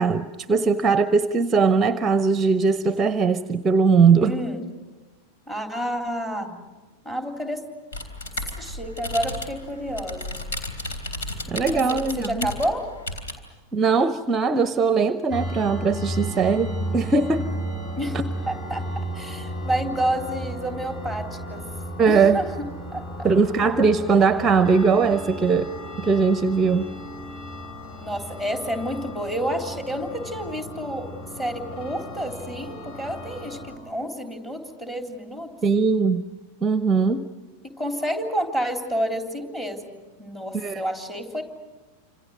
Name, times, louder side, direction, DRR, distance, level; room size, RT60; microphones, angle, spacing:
voice 1, 0.0-4.4 11.5-12.5 13.7-17.4 18.1-18.2 22.0-22.4 23.2-25.7 26.0-26.9 35.6-36.2 36.6-37.2 40.5-40.8, right 5 dB, 20° right, 13 dB, 0.7 m, -20 dB
voice 2, 4.2-4.6 5.5-6.5 7.1-7.6 8.6-10.4 11.7-12.9 18.0-18.2 18.5-18.9 19.1-21.7 22.1-22.5 22.9-23.3 28.0-31.1 31.4-35.5 37.6-39.8 40.2-41.4, equal, 15° left, 3 dB, 3.5 m, -29 dB
sound 1, 7.9-13.3, left 2 dB, 65° left, 3.4 m, -33 dB
sound 2, 15.3-33.8, equal, 35° left, 5.5 m, -34 dB
29.0 x 26.5 x 6.5 m, 1.2 s
figure-of-eight pair, 90°, 0 cm